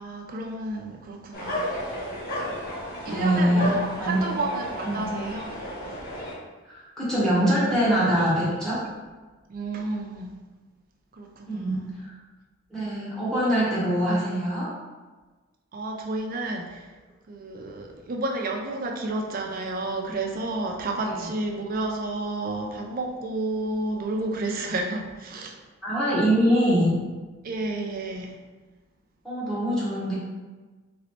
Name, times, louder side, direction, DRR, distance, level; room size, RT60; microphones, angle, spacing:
voice 1, 0.0-1.7 2.4-2.6 3.0-5.6 9.5-10.3 11.1-11.9 15.7-16.9 17.3-25.6 27.4-28.4, right 2 dB, 45° right, 1 dB, 0.4 m, -31 dB
sound 1, 1.3-6.4, equal, 45° left, 0.9 m, -33 dB
voice 2, 3.0-4.2 4.8-5.0 6.6-8.9 11.5-12.1 12.7-14.7 25.8-26.9 29.2-30.1, equal, 5° left, -9 dB, 1.0 m, -24 dB
3.0 x 3.0 x 2.9 m, 1.3 s
head